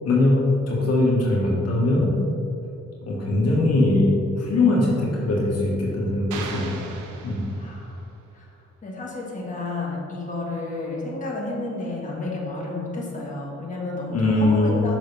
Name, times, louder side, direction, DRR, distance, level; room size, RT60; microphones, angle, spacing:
voice 1, 0.0-2.1 3.0-4.1 4.3-6.8 7.2-7.5 14.1-14.9, left 2 dB, 55° left, -4 dB, 1.5 m, -21 dB
sound 1, 6.3-8.0, right 4 dB, 85° right, 0.8 m, -37 dB
voice 2, 7.6-8.0 8.3-8.5 8.8-15.0, left 2 dB, 25° left, -4 dB, 1.6 m, -31 dB
6.4 x 6.4 x 3.3 m, 2.6 s
cardioid pair, 90°, 30 cm